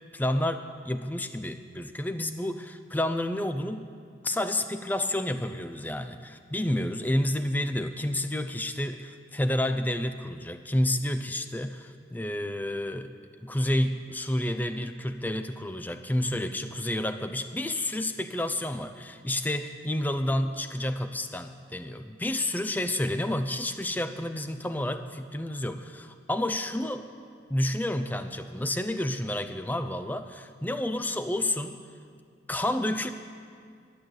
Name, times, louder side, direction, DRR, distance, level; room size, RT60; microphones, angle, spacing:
voice 1, 0.1-3.9 4.2-13.1 13.4-27.1 27.5-31.8 32.5-33.1, left 1 dB, 10° left, 9 dB, 0.5 m, -30 dB
11.5 x 10.5 x 7.8 m, 2.1 s
head